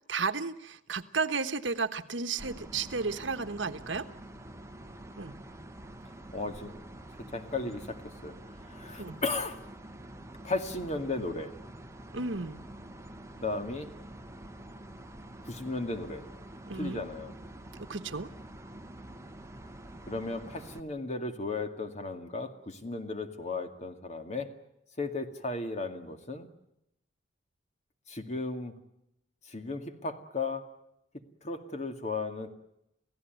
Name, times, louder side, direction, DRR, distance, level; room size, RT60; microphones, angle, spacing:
voice 1, 0.1-4.0 5.2-5.4 9.0-9.2 12.1-12.6 16.7-17.0 17.8-18.3, right 4 dB, 75° right, 10 dB, 1.3 m, -33 dB
sound 1, 2.4-20.8, right 1 dB, 15° right, 1.3 m, -47 dB
voice 2, 6.3-6.9 7.3-8.4 8.7-9.6 10.4-11.5 13.4-13.9 15.4-16.3 16.8-17.3 20.1-24.5 25.0-26.5 28.1-28.7 29.5-30.6 31.4-32.5, left 3 dB, 40° left, 7 dB, 2.3 m, -35 dB
29.0 x 16.0 x 9.4 m, 0.83 s
head